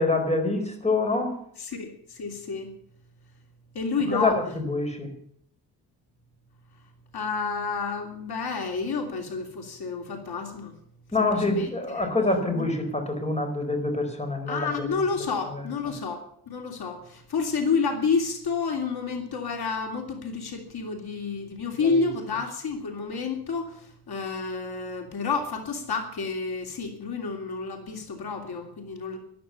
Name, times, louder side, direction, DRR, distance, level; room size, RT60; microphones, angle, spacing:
voice 1, 0.0-1.4 4.1-5.1 11.1-14.9, left 2 dB, 15° left, 4 dB, 4.5 m, -26 dB
voice 2, 1.6-2.7 3.7-4.4 7.1-10.7 11.3-12.1 12.5-12.7 14.5-29.2, left 4 dB, 70° left, 4 dB, 2.9 m, -30 dB
13.0 x 12.0 x 7.0 m, 0.66 s
wide cardioid pair, 130°, 39 cm